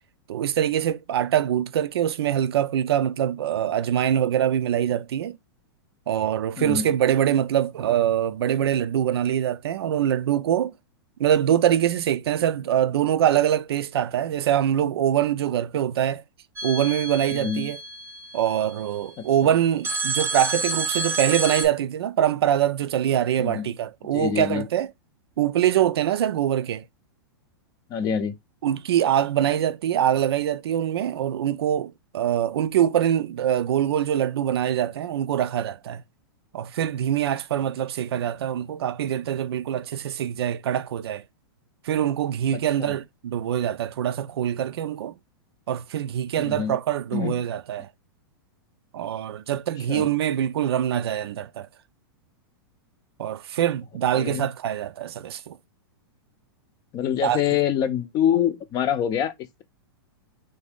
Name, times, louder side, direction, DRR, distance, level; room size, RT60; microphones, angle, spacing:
voice 1, 0.3-5.4 6.1-10.7 11.2-16.2 16.6-17.8 18.3-24.9 25.4-26.8 28.6-36.0 36.5-41.2 41.8-45.2 45.7-47.9 48.9-51.7 53.2-55.6 57.2-57.4, right 10 dB, 80° right, 0.4 m, -24 dB
voice 2, 6.6-6.9 17.3-17.7 19.2-19.3 23.4-23.7 24.1-24.7 27.9-28.4 42.5-43.0 46.4-46.8 47.1-47.4 49.9-50.1 54.1-54.5 56.9-59.3, left 9 dB, 30° left, 0.5 m, -25 dB
sound 1, 16.6-18.8 19.8-21.7, right 3 dB, 20° right, 0.6 m, -29 dB
3.4 x 2.7 x 3.4 m
hypercardioid pair, 140°, 13 cm